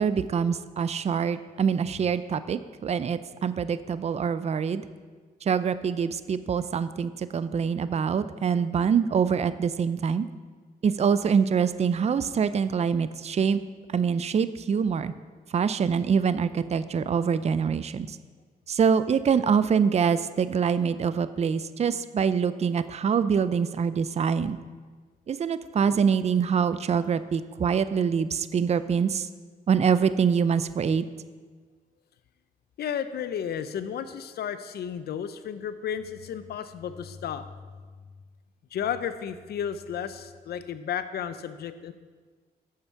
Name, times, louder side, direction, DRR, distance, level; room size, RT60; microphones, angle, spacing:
voice 1, 0.0-4.8 5.4-10.3 10.8-13.6 13.9-15.1 15.5-18.2 18.7-24.6 25.3-29.3 29.7-31.0, right 6 dB, 40° right, 14 dB, 0.4 m, -25 dB
voice 2, 32.8-37.4 38.7-41.9, left 8 dB, 80° left, 12 dB, 0.6 m, -33 dB
8.6 x 7.0 x 5.8 m, 1.5 s
cardioid pair, 80°, 16 cm